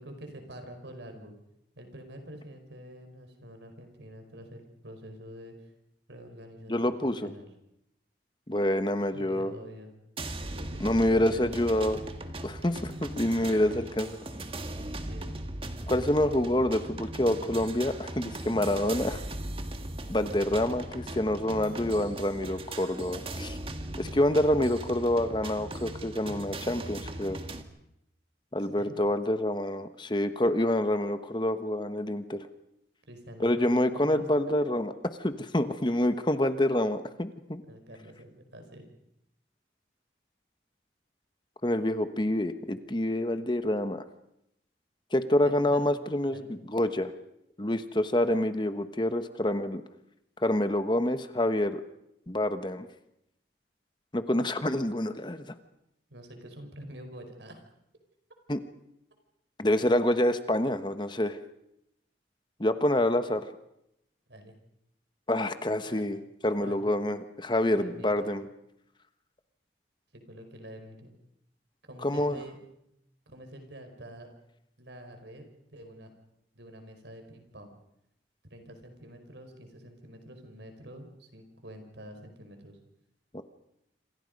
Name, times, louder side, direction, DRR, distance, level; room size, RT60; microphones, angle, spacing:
voice 1, 0.0-1.3 1.8-5.7 6.1-7.5 9.1-9.9 10.5-11.7 14.8-15.4 28.8-29.0 33.1-34.3 37.6-38.9 45.4-45.8 46.2-46.5 56.1-57.6 64.3-64.6 65.9-66.1 66.6-66.9 67.7-68.3 70.1-71.1 71.8-72.6 73.3-74.3 74.8-75.4 75.7-76.1 76.5-77.7 78.5-82.8, equal, 80° right, 6 dB, 5.1 m, -47 dB
voice 2, 6.7-7.3 8.5-9.5 10.8-12.0 12.4-14.2 15.9-19.2 20.1-23.6 24.0-27.4 28.5-32.5 33.4-34.9 35.2-37.6 41.6-44.0 45.1-47.1 47.6-49.8 50.4-51.8 52.3-52.9 54.1-55.5 58.5-58.6 59.6-61.4 62.6-63.5 65.3-68.5 72.0-72.4 83.3-83.4, left 1 dB, 25° left, 10 dB, 1.2 m, -27 dB
sound 1, 10.2-27.6, right 1 dB, 30° right, 1.7 m, -39 dB
27.0 x 27.0 x 5.4 m, 0.80 s
head